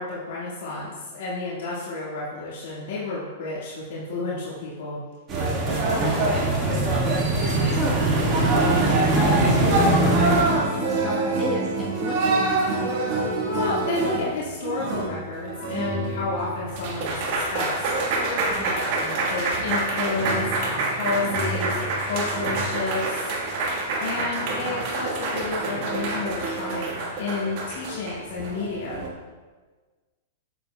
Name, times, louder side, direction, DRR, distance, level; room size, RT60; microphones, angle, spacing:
voice 1, 0.0-5.0 12.7-13.1 13.4-18.0 18.6-29.1, left 3 dB, 70° left, -7 dB, 1.8 m, -31 dB
sound 1, 5.3-10.4, right 2 dB, 30° right, 1.7 m, -21 dB
voice 2, 5.7-7.2 7.7-12.4 18.4-18.9, left 2 dB, 15° left, -5 dB, 1.1 m, -32 dB
sound 2, 9.7-29.1, right 2 dB, 50° right, 1.4 m, -27 dB
7.9 x 7.2 x 2.2 m, 1.4 s
hypercardioid pair, 135°, 0 cm